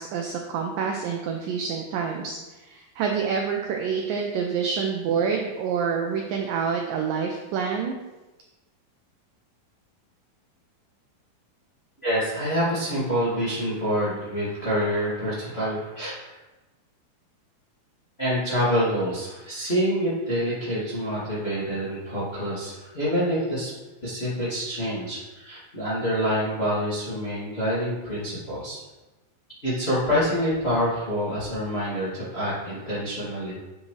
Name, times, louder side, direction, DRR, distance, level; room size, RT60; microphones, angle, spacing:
voice 1, 0.0-8.0, right 6 dB, 80° right, 2 dB, 2.0 m, -27 dB
voice 2, 12.0-16.4 18.2-23.7 24.0-28.8 29.6-33.5, equal, 20° left, -9 dB, 1.9 m, -26 dB
9.9 x 7.6 x 3.3 m, 1.1 s
omnidirectional pair, 4.6 m